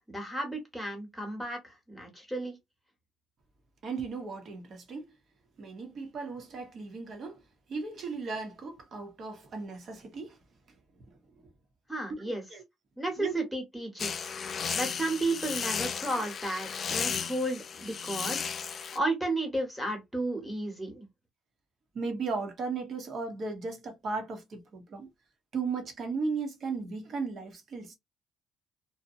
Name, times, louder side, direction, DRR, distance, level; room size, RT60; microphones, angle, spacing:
voice 1, 0.1-2.6 11.9-12.4 13.0-14.3 14.7-18.5 18.9-21.1, right 2 dB, ahead, 1.1 m, -33 dB
voice 2, 3.8-5.1 5.6-7.4 7.7-10.4 11.1-11.2 12.2-12.6 13.2-13.3 14.5-14.7 21.9-25.1 25.5-28.0, right 4 dB, 50° right, 0.9 m, -36 dB
sound 1, 14.0-19.0, left 6 dB, 40° left, 0.3 m, -34 dB
2.7 x 2.1 x 2.6 m
cardioid pair, 125°, 0 cm